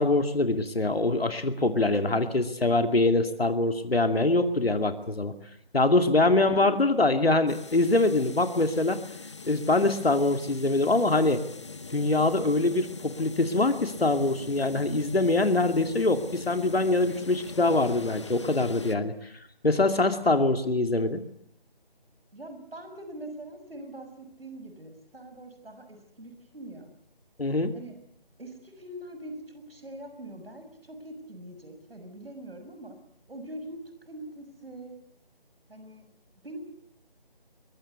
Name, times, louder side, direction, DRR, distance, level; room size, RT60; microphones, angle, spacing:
voice 1, 0.0-5.3 5.7-9.0 9.5-11.4 11.9-19.3 19.6-21.2 27.4-27.7, left 2 dB, 80° left, 8 dB, 2.5 m, -24 dB
voice 2, 6.0-6.8 22.3-26.9 27.7-28.0 28.4-33.0 33.3-35.0 35.7-36.1 36.4-36.6, right 1 dB, 75° right, 7 dB, 6.5 m, -43 dB
sound 1, 7.5-18.9, left 4 dB, 30° left, 1.2 m, -42 dB
22.5 x 22.5 x 8.2 m, 0.70 s
figure-of-eight pair, 165°, 30 cm